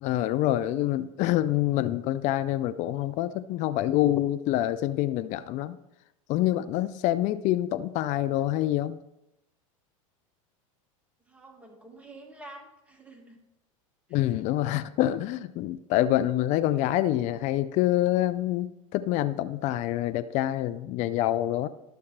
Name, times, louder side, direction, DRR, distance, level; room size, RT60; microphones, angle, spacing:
voice 1, 0.0-5.8 6.3-9.0 14.1-21.7, left 14 dB, 45° left, 13 dB, 0.5 m, -26 dB
voice 2, 11.3-13.4 14.1-14.3, right 2 dB, 10° right, 0 dB, 1.9 m, -48 dB
11.5 x 6.7 x 3.3 m, 0.88 s
hypercardioid pair, 105°, 17 cm